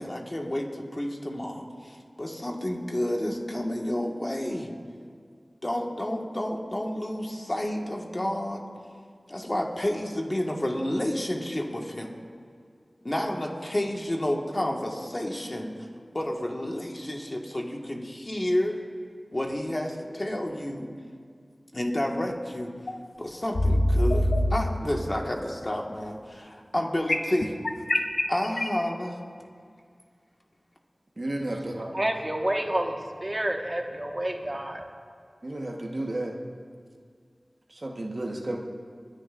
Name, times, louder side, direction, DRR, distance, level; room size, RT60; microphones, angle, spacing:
voice 1, 0.0-4.7 5.6-8.6 9.3-12.2 13.0-15.9 16.1-18.8 19.3-20.9 21.7-22.7 23.2-27.5 28.3-29.2, left 1 dB, 35° left, 1.5 m, -30 dB
sound 1, 22.9-23.0 23.5-24.6 27.1-28.8, left 1 dB, 75° left, 0.8 m, -23 dB
voice 2, 31.2-31.9 35.4-36.4 37.7-38.6, right 1 dB, 60° right, 1.2 m, -32 dB
voice 3, 31.9-34.9, right 1 dB, 30° right, 1.3 m, -29 dB
29.5 x 10.5 x 2.5 m
wide cardioid pair, 45°, 0 cm